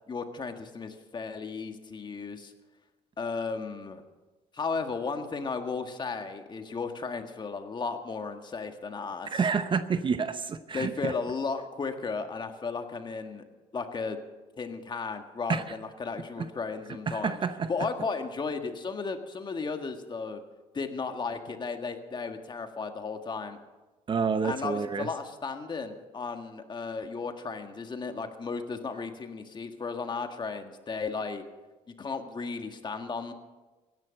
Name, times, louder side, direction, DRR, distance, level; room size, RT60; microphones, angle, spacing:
voice 1, 0.1-2.5 3.2-4.0 4.5-9.4 10.7-13.4 13.7-14.2 14.6-17.4 17.7-20.4 20.7-23.6 24.4-31.4 32.0-33.3, left 4 dB, 30° left, 6 dB, 1.7 m, -34 dB
voice 2, 9.3-11.1 15.5-15.6 16.4-16.5 17.1-17.7 24.1-25.1, right 5 dB, 35° right, 11 dB, 0.8 m, -28 dB
16.5 x 11.0 x 6.5 m, 1.2 s
cardioid pair, 100°, 15 cm